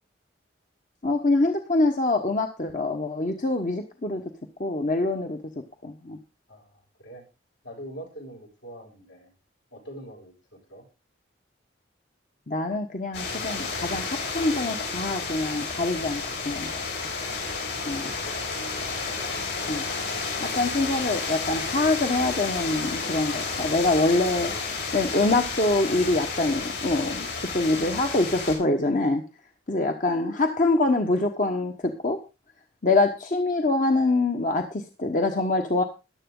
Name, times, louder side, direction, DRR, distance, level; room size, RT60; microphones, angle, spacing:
voice 1, 1.0-4.2 4.6-5.4 5.8-6.2 12.5-16.8 17.9-18.1 19.7-19.9 20.4-24.5 24.9-29.2 29.7-32.2 32.8-35.8, left 2 dB, 40° left, 5 dB, 1.2 m, -25 dB
voice 2, 6.5-7.2 7.6-9.3 9.7-10.9 17.8-18.4, equal, 75° left, 0 dB, 6.9 m, -43 dB
sound 1, 13.1-28.6, left 4 dB, 60° left, 5.5 m, -31 dB
14.5 x 10.5 x 3.9 m, 0.29 s
head